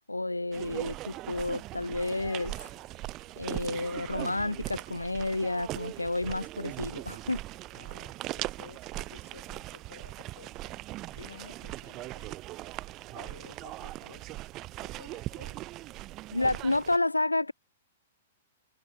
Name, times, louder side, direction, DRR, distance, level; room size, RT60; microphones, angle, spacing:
voice 1, 0.0-2.5 3.4-7.4 16.3-17.5, left 2 dB, 85° left, 0.4 m, -30 dB
sound 1, 0.5-17.0, right 17 dB, 30° right, 0.7 m, -40 dB
sound 2, 2.2-9.5, left 7 dB, 15° left, 1.8 m, -63 dB
voice 2, 7.7-12.4 13.1-14.5 14.8-15.6, left 7 dB, 65° left, 3.4 m, -53 dB
figure-of-eight pair, 110°, 0 cm